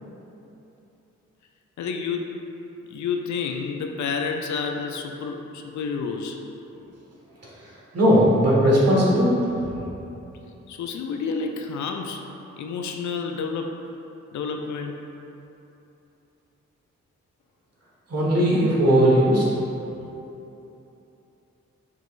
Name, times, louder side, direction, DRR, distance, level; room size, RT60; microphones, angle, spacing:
voice 1, 1.8-2.3 2.9-6.4 10.7-12.2 12.6-13.7 14.3-15.0, left 5 dB, 65° left, 3 dB, 0.4 m, -29 dB
voice 2, 7.4-9.4 9.7-9.8 18.1-19.5, equal, 50° right, -6 dB, 1.5 m, -19 dB
6.3 x 3.0 x 2.5 m, 2.9 s
supercardioid pair, 50°, 32 cm